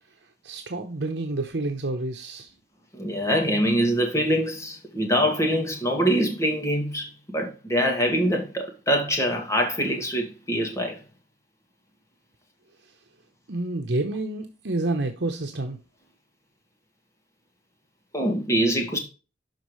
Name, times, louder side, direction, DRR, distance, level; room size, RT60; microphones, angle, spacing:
voice 1, 0.4-2.5 13.5-15.8, right 2 dB, 75° right, 1.0 m, -29 dB
voice 2, 2.9-11.0 18.1-19.0, equal, 20° left, 2.2 m, -24 dB
12.0 x 4.5 x 3.2 m
head